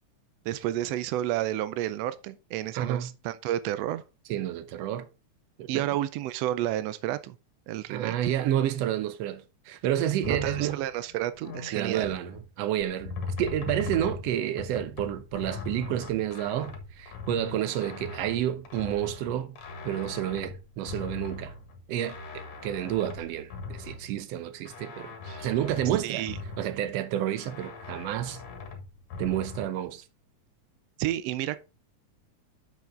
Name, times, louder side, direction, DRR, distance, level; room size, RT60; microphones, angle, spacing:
voice 1, 0.4-4.0 5.7-7.4 7.7-8.2 10.2-12.1 26.0-26.4 31.0-31.6, right 13 dB, 90° right, 1.4 m, -31 dB
voice 2, 2.7-3.1 4.3-5.1 5.6-5.9 7.9-10.8 11.7-19.6 19.8-21.5 21.9-26.2 26.6-28.4 29.2-30.0, right 11 dB, 70° right, 1.6 m, -30 dB
sound 1, 10.2-12.5 12.8-24.3 24.7-26.9 27.4-29.6, left 4 dB, 65° left, 2.5 m, -40 dB
7.4 x 5.9 x 3.7 m
omnidirectional pair, 3.4 m